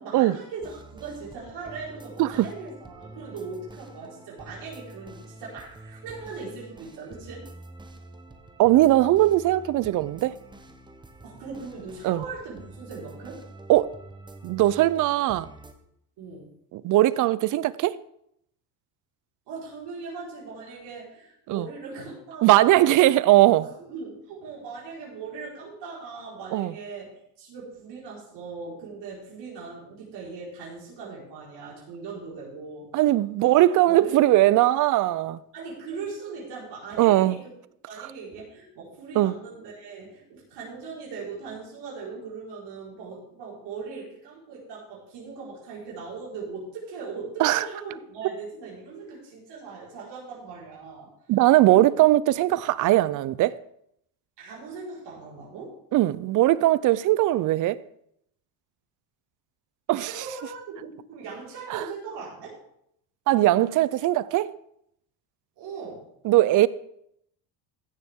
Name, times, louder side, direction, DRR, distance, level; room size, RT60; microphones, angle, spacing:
voice 1, 0.0-7.5 11.2-13.4 16.2-16.5 19.5-23.0 23.6-27.1 27.4-32.9 33.4-34.2 35.5-37.4 37.9-51.1 51.7-51.9 54.4-55.8 60.0-62.6 65.6-66.1, right 4 dB, 70° right, 4.7 m, -39 dB
sound 1, 0.6-15.7, right 2 dB, 10° right, 0.9 m, -46 dB
voice 2, 8.6-10.3 12.0-12.2 13.7-13.9 14.4-15.5 16.8-18.0 21.5-21.7 22.4-23.7 26.5-26.7 32.9-35.4 37.0-37.4 39.2-39.3 47.4-47.6 51.3-53.6 55.9-57.8 59.9-60.1 61.7-61.8 63.3-64.5 66.2-66.7, right 15 dB, 50° right, 0.5 m, -20 dB
15.5 x 7.0 x 3.6 m
cardioid pair, 140°, 42 cm